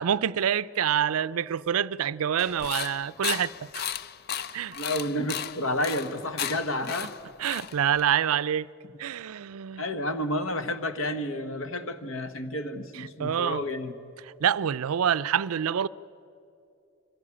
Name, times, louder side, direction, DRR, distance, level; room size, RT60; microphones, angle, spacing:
voice 1, 0.0-3.8 4.5-4.8 7.4-8.7 9.0-9.8 13.0-13.6 14.4-15.9, right 9 dB, 80° right, 0.4 m, -26 dB
sound 1, 2.4-8.1, left 9 dB, 45° left, 0.5 m, -35 dB
voice 2, 4.7-7.1 8.8-8.9 9.8-14.0, left 1 dB, 65° left, 1.3 m, -30 dB
24.0 x 15.5 x 9.9 m
head